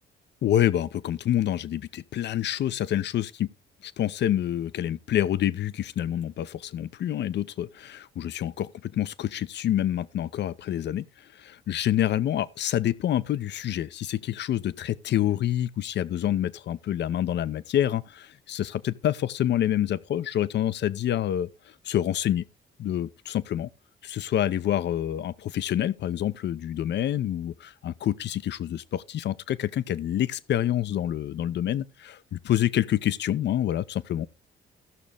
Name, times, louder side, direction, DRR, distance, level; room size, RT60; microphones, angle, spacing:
voice 1, 0.4-3.5 3.8-11.0 11.4-21.5 21.8-22.5 22.8-23.7 24.0-34.3, left 11 dB, 60° left, 0.6 m, -27 dB
15.5 x 6.2 x 3.3 m
cardioid pair, 90°, 20 cm